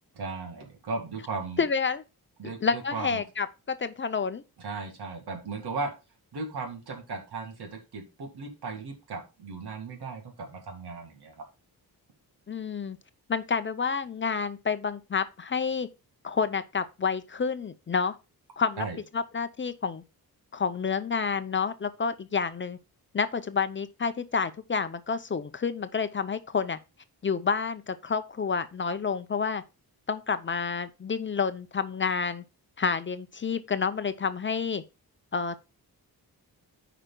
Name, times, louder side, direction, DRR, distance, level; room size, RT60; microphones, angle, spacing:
voice 1, 0.2-1.6 2.4-3.2 4.6-5.9 6.3-11.4 18.8-19.0, right 4 dB, 85° right, 2.1 m, -36 dB
voice 2, 1.6-2.0 2.4-4.4 12.5-13.0 13.3-15.9 16.2-18.2 18.6-18.9 19.1-20.0 20.5-22.8 23.1-26.8 27.2-29.6 30.1-32.4 32.8-34.8 35.3-35.6, left 5 dB, 30° left, 0.5 m, -29 dB
13.5 x 5.0 x 2.2 m
wide cardioid pair, 110°, 38 cm